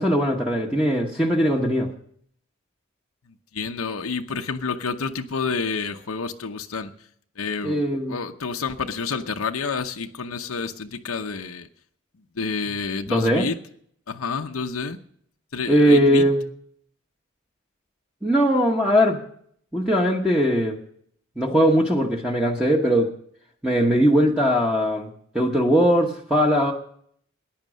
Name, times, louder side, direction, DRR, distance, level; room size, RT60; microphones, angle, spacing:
voice 1, 0.0-1.9 7.6-8.2 13.1-13.5 15.7-16.4 18.2-19.2 19.7-20.8 21.4-23.1 23.6-25.1 25.3-26.7, equal, 5° right, -1 dB, 1.1 m, -20 dB
voice 2, 3.5-6.9 7.4-7.8 8.1-11.7 12.4-13.6 14.1-15.0 15.5-16.3, left 4 dB, 85° left, 5 dB, 0.8 m, -29 dB
14.5 x 10.5 x 6.3 m, 0.65 s
head